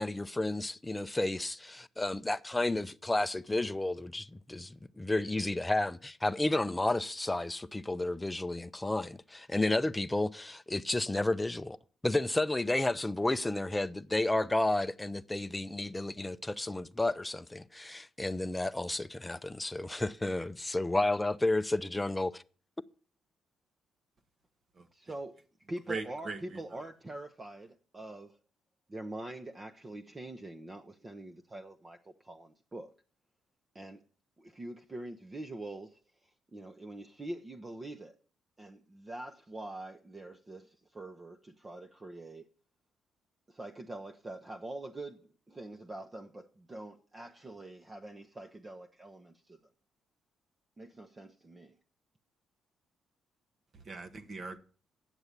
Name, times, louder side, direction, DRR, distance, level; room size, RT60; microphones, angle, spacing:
voice 1, 0.0-11.8 12.0-22.4, left 2 dB, 10° left, 0.5 m, -32 dB
voice 2, 24.9-25.4 25.7-28.3 28.9-32.9 33.7-34.0 34.4-38.2 38.6-42.5 43.5-49.6 50.8-51.8, right 2 dB, 25° right, 0.8 m, -44 dB
voice 3, 25.9-26.6 53.9-54.6, right 4 dB, 45° right, 1.2 m, -39 dB
9.0 x 7.0 x 8.2 m
cardioid pair, 90°, 0 cm